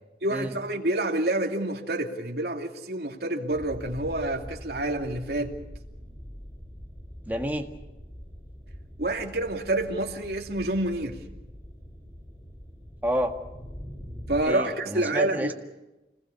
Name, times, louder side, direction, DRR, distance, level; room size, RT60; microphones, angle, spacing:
voice 1, 0.2-5.5 9.0-11.2 14.3-15.5, right 1 dB, 65° right, 2.6 m, -28 dB
sound 1, 3.5-14.4, equal, 20° left, 5.3 m, -43 dB
voice 2, 7.3-7.7 13.0-13.4 14.5-15.5, equal, 10° right, 1.8 m, -29 dB
26.0 x 20.5 x 7.0 m
head